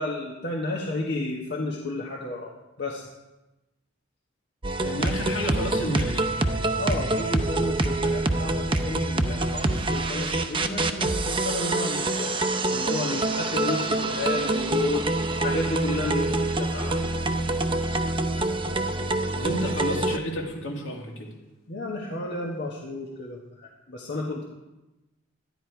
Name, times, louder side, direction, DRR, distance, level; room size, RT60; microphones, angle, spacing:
voice 1, 0.0-2.5 2.8-3.1 6.8-12.3 12.7-17.0 21.7-24.5, left 2 dB, 60° left, -3 dB, 1.5 m, -32 dB
sound 1, 4.6-20.2, right 2 dB, 25° right, 0.7 m, -26 dB
voice 2, 4.8-6.3 19.3-21.3, equal, 75° left, 0 dB, 2.3 m, -31 dB
12.5 x 10.5 x 4.6 m, 1.0 s
head